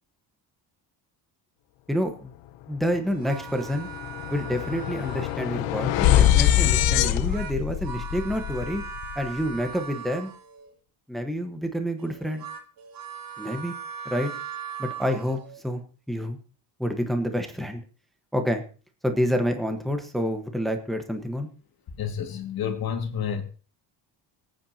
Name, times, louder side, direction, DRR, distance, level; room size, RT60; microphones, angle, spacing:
voice 1, 1.9-2.3 2.7-3.9 4.3-8.8 9.2-10.3 11.1-12.4 13.4-13.7 14.0-14.3 14.8-15.4 15.6-15.8 16.1-16.4 16.8-17.8 18.3-18.6 19.0-21.5, equal, ahead, 1.1 m, -28 dB
sound 1, 2.9-3.0 3.3-9.6, left 12 dB, 80° left, 0.8 m, -24 dB
sound 2, 3.1-5.7 7.1-10.7 12.0-15.6, right 6 dB, 50° right, 1.6 m, -40 dB
voice 2, 22.0-23.4, left 8 dB, 55° left, 2.0 m, -29 dB
24.5 x 9.0 x 2.8 m
cardioid pair, 150°, 44 cm